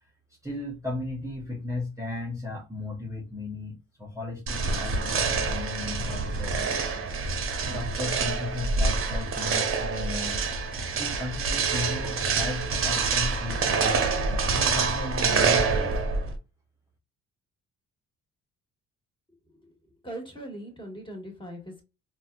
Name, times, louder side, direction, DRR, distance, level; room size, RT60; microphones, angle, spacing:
voice 1, 0.4-7.1 7.7-10.4 10.9-16.0, left 3 dB, 10° right, 0.8 m, -36 dB
sound 1, 4.5-16.4, right 4 dB, 45° right, 0.8 m, -26 dB
voice 2, 20.0-21.8, right 1 dB, 15° left, 1.5 m, -40 dB
4.0 x 2.3 x 2.3 m
cardioid pair, 90°, 30 cm